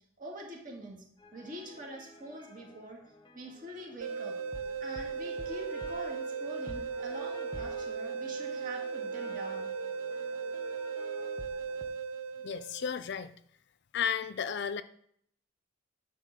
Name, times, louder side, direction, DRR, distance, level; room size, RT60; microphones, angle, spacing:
voice 1, 0.2-1.0 1.3-3.0 3.3-4.4 4.8-9.7, right 1 dB, 40° right, 0 dB, 2.2 m, -44 dB
sound 1, 1.2-11.8, left 1 dB, 20° left, 0.9 m, -50 dB
sound 2, 4.0-13.0, right 5 dB, 75° right, 0.4 m, -37 dB
voice 2, 12.4-13.3 13.9-14.8, left 7 dB, 55° left, 13 dB, 0.5 m, -33 dB
10.5 x 3.9 x 6.7 m, 0.65 s
head